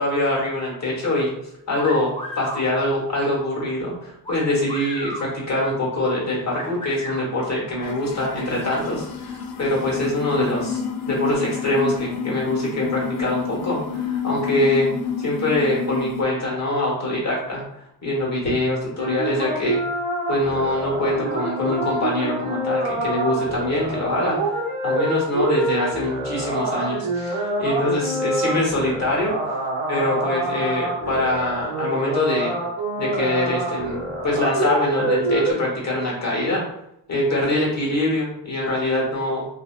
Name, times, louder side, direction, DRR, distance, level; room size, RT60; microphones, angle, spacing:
voice 1, 0.0-1.3 1.7-14.9 15.2-19.8 20.3-29.3 29.9-32.6 33.0-36.6 37.1-39.5, left 1 dB, 40° left, -3 dB, 1.2 m, -24 dB
sound 1, 1.7-2.7 4.2-5.3 6.5-7.2, equal, 15° left, 0.5 m, -33 dB
sound 2, 7.8-16.2, left 6 dB, 60° left, 0.5 m, -29 dB
sound 3, 19.0-35.5, right 2 dB, 80° right, 0.9 m, -26 dB
2.7 x 2.1 x 2.3 m, 0.79 s
cardioid pair, 75°, 44 cm